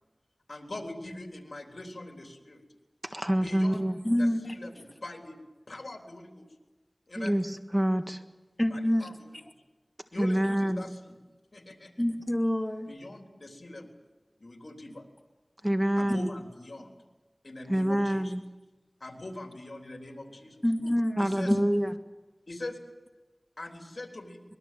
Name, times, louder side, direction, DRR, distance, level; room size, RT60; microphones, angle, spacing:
voice 1, 0.5-2.6 3.4-3.8 4.2-5.4 5.7-6.5 7.1-7.4 8.7-9.4 10.1-11.2 11.5-11.9 12.9-13.9 14.4-15.1 16.0-16.9 17.4-18.3 19.0-20.6 21.2-21.6 22.5-22.8 23.6-24.4, left 2 dB, 80° left, 3 dB, 3.7 m, -42 dB
voice 2, 3.0-4.0 7.2-8.2 10.2-10.9 15.6-16.3 17.7-18.4 21.2-21.9, equal, 15° right, 7 dB, 1.7 m, -27 dB
voice 3, 4.0-4.5 8.6-9.1 12.0-12.9 20.6-21.6, left 1 dB, 20° left, 3 dB, 2.4 m, -27 dB
24.0 x 21.5 x 7.7 m, 1.1 s
wide cardioid pair, 40°, 0 cm